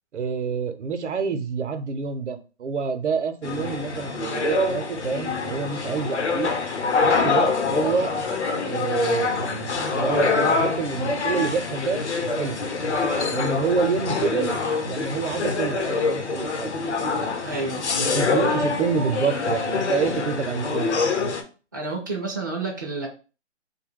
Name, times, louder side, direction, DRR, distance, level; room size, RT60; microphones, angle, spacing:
voice 1, 0.1-6.5 7.0-8.1 8.6-12.6 13.3-16.7 18.0-20.9, right 5 dB, 80° right, 9 dB, 0.7 m, -27 dB
sound 1, 3.4-21.4, left 4 dB, 70° left, 0.8 m, -25 dB
voice 2, 17.4-17.8 21.7-23.1, right 3 dB, 20° right, -2 dB, 0.3 m, -29 dB
2.7 x 2.2 x 3.5 m, 0.34 s
hypercardioid pair, 150°, 35 cm